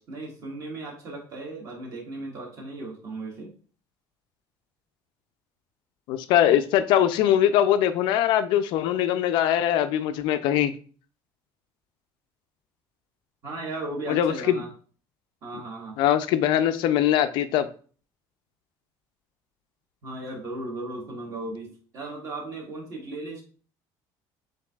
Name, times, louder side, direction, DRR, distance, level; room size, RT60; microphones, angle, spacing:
voice 1, 0.1-3.5 13.4-14.7 15.4-16.0 20.0-23.4, right 2 dB, 40° right, 0 dB, 1.3 m, -36 dB
voice 2, 6.1-10.7 14.1-14.6 16.0-17.7, left 11 dB, 65° left, 10 dB, 0.4 m, -22 dB
6.9 x 2.6 x 2.3 m, 0.40 s
cardioid pair, 175°, 9 cm